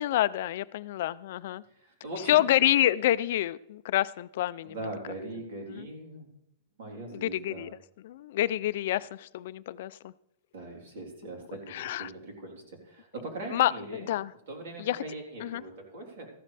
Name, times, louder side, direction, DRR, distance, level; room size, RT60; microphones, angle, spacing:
voice 1, 0.0-1.6 2.3-4.7 7.2-7.7 8.0-10.1 11.7-12.1 13.5-14.3 14.9-15.0 15.4-15.6, left 13 dB, 55° left, 16 dB, 0.4 m, -27 dB
voice 2, 1.7-2.5 4.6-6.3 6.8-7.7 10.5-14.1 14.5-16.3, right 2 dB, 60° right, 1 dB, 3.6 m, -41 dB
14.0 x 11.5 x 3.4 m, 0.81 s
supercardioid pair, 175°, 0 cm